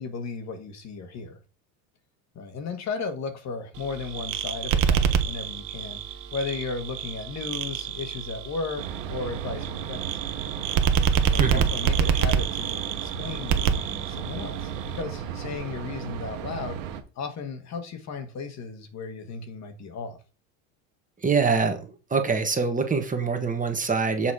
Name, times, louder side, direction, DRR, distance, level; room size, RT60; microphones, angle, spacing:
voice 1, 0.0-1.4 2.3-6.0 6.3-10.1 11.3-16.8 17.2-20.2, left 4 dB, 40° left, 1.7 m, -35 dB
sound 1, 3.7-15.0, right 7 dB, 50° right, 1.2 m, -27 dB
sound 2, 8.8-17.0, right 8 dB, 75° right, 1.5 m, -35 dB
voice 2, 11.4-11.7 21.2-21.8 22.1-24.3, right 5 dB, 20° right, 1.5 m, -24 dB
7.2 x 4.2 x 4.9 m
supercardioid pair, 100°, 40 cm